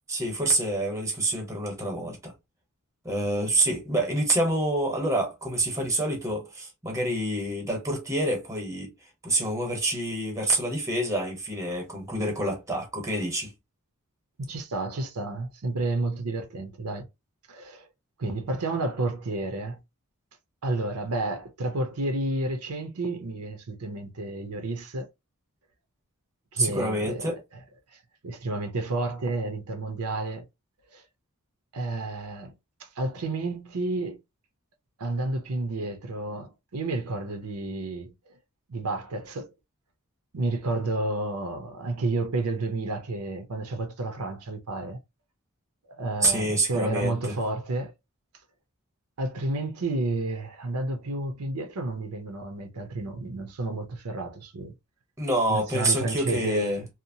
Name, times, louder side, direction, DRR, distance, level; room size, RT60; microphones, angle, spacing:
voice 1, 0.1-2.3 3.0-8.9 9.2-13.5 26.6-27.4 46.2-47.4 55.2-56.8, right 1 dB, 15° right, 0.9 m, -27 dB
voice 2, 14.4-17.0 17.5-17.8 18.2-19.8 20.6-25.1 26.5-27.3 27.9-28.0 28.2-30.5 30.9-31.0 31.7-32.5 32.8-34.2 35.0-38.3 38.7-39.5 40.3-45.0 45.9-47.9 49.2-54.7 55.5-56.9, right 2 dB, 90° right, 0.7 m, -31 dB
2.8 x 2.1 x 2.6 m
head